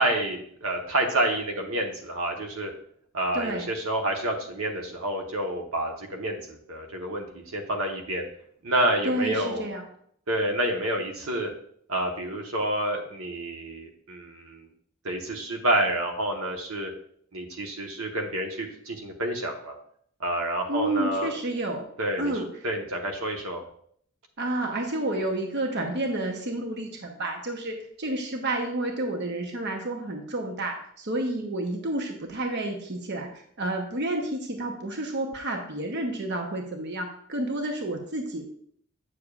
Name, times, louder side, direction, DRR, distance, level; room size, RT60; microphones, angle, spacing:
voice 1, 0.0-2.7 3.1-8.3 8.6-9.7 10.3-11.5 11.9-14.7 15.0-16.9 17.3-19.7 20.2-21.3 22.0-22.3 22.6-23.6, right 1 dB, 90° right, 3 dB, 1.2 m, -28 dB
voice 2, 3.3-3.7 9.0-9.8 20.7-21.9 22.2-22.5 24.4-33.3 33.6-38.4, right 1 dB, 55° right, 3 dB, 0.9 m, -30 dB
8.4 x 6.8 x 2.4 m, 0.63 s
head